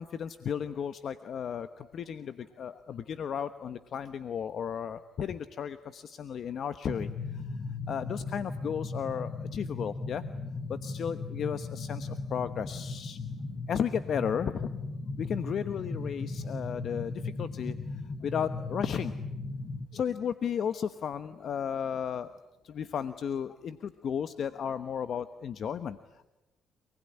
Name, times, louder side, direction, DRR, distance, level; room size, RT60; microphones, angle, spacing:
voice 1, 0.0-7.4 7.9-10.2 10.7-13.2 13.7-14.8 15.2-19.1 19.9-22.3 22.6-26.3, left 8 dB, 60° left, 11 dB, 1.1 m, -34 dB
sound 1, 6.9-19.9, left 3 dB, 35° left, 4.0 m, -37 dB
28.0 x 20.0 x 10.0 m, 0.97 s
cardioid pair, 90°, 0 cm